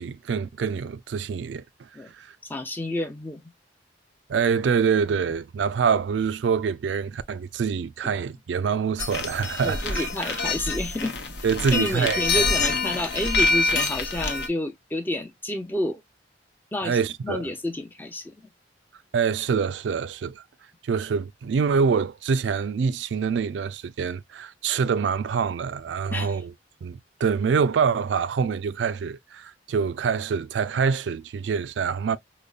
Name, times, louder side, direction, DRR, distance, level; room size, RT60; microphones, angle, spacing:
voice 1, 0.0-1.9 2.1-2.4 4.3-10.4 11.4-12.5 16.8-17.4 19.1-20.4 20.8-26.5 26.8-32.2, right 6 dB, 75° right, 0.3 m, -25 dB
voice 2, 2.4-3.4 8.0-8.1 9.6-11.1 11.4-16.0 16.7-17.0 17.2-18.3 26.1-26.4, left 1 dB, 10° left, 0.6 m, -30 dB
sound 1, 9.0-14.5, left 3 dB, 65° left, 0.8 m, -26 dB
5.1 x 2.1 x 2.3 m
head